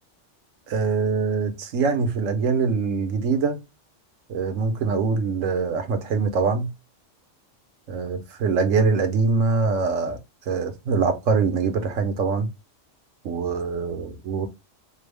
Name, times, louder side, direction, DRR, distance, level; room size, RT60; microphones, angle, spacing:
voice 1, 0.7-3.6 4.3-6.7 7.9-10.2 10.5-12.5 13.2-14.5, right 4 dB, 90° right, 1.2 m, -23 dB
5.2 x 2.0 x 3.3 m
omnidirectional pair, 1.3 m